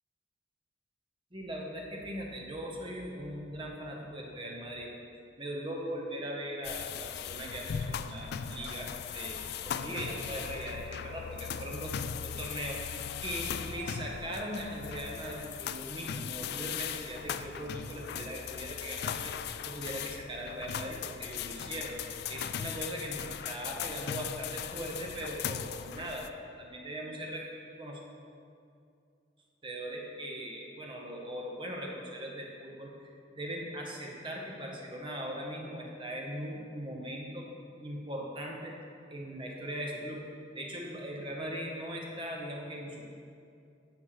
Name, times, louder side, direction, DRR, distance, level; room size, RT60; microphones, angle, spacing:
voice 1, 1.3-4.9 5.4-12.8 13.2-19.3 19.6-21.9 22.3-26.2 26.6-27.4 27.7-28.0 29.6-37.4 37.8-38.7 39.1-40.2 40.5-43.1, equal, 30° right, -1 dB, 1.1 m, -40 dB
sound 1, 6.6-26.3, left 8 dB, 60° left, 0.3 m, -38 dB
9.7 x 7.9 x 3.2 m, 2.4 s
head